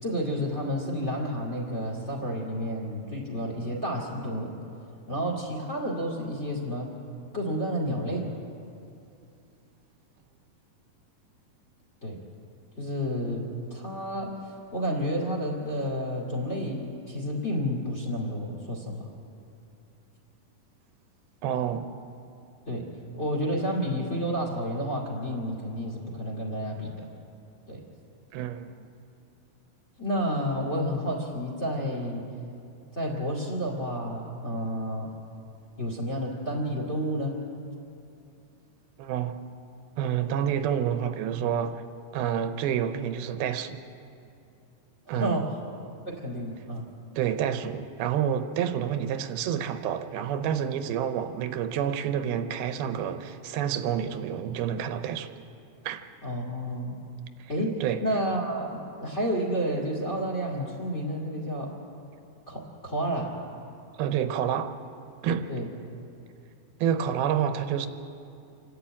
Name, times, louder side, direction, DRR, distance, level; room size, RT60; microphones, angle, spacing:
voice 1, 0.0-4.5 5.1-6.9 7.3-8.3 12.0-12.2 12.8-19.0 22.7-22.9 23.2-27.1 27.7-27.8 30.0-32.2 32.9-35.1 35.8-37.4 45.1-45.6 46.1-46.9 56.2-57.0 57.5-61.8 62.5-63.3 65.5-65.7, equal, 20° left, 0 dB, 2.1 m, -30 dB
voice 2, 21.4-21.9 28.3-28.9 39.0-39.4 40.0-41.8 42.1-43.8 45.1-45.5 47.2-55.3 55.9-56.1 57.8-58.0 64.0-64.7 65.2-65.5 66.8-67.9, right 9 dB, 85° right, 9 dB, 2.7 m, -28 dB
27.0 x 11.5 x 8.7 m, 2.6 s
omnidirectional pair, 4.3 m